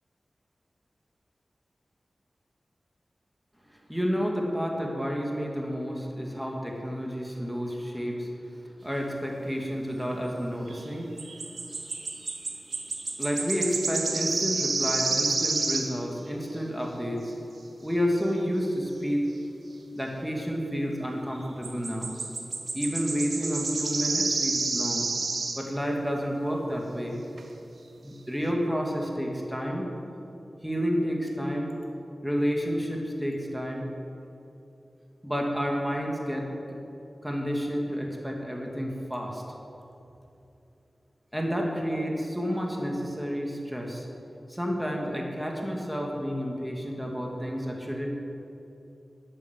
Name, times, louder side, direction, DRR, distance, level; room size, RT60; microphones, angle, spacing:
voice 1, 3.7-11.1 13.2-17.3 17.8-19.3 19.9-22.1 22.7-25.1 25.6-27.2 28.0-29.9 30.6-31.7 32.2-33.9 35.2-36.8 37.2-39.4 41.3-44.1 44.5-48.1, equal, 5° right, 0 dB, 2.7 m, -30 dB
sound 1, 10.7-10.9 11.2-16.0 21.6-25.7 27.0-27.1 27.4-27.5, right 3 dB, 75° right, 1.1 m, -30 dB
10.5 x 9.8 x 8.3 m, 2.8 s
cardioid pair, 40°, 0 cm